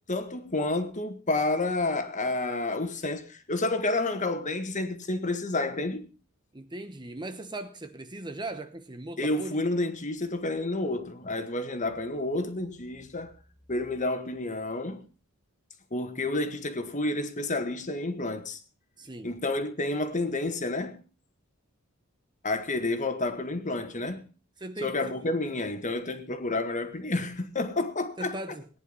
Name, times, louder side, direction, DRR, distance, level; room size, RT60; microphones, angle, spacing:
voice 1, 0.1-6.1 9.2-13.3 13.7-15.0 15.9-18.6 19.2-21.0 22.4-24.3 24.8-28.3, left 2 dB, 35° left, 1.8 m, -30 dB
voice 2, 6.5-9.6 19.0-19.3 24.6-25.2 28.2-28.7, right 2 dB, 20° right, 1.0 m, -39 dB
18.5 x 10.0 x 5.5 m
head